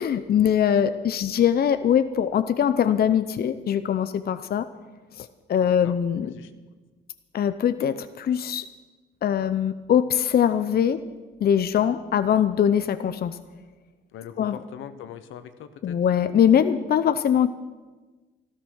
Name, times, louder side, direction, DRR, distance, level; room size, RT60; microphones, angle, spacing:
voice 1, 0.0-4.6 5.2-6.3 7.3-8.7 9.2-11.0 11.4-13.4 14.4-14.6 15.8-17.5, left 9 dB, 50° left, 11 dB, 0.7 m, -22 dB
voice 2, 5.6-5.9 6.3-6.5 14.1-16.0, left 9 dB, 85° left, 10 dB, 1.0 m, -41 dB
13.0 x 13.0 x 6.3 m, 1.3 s
cardioid pair, 90°, 20 cm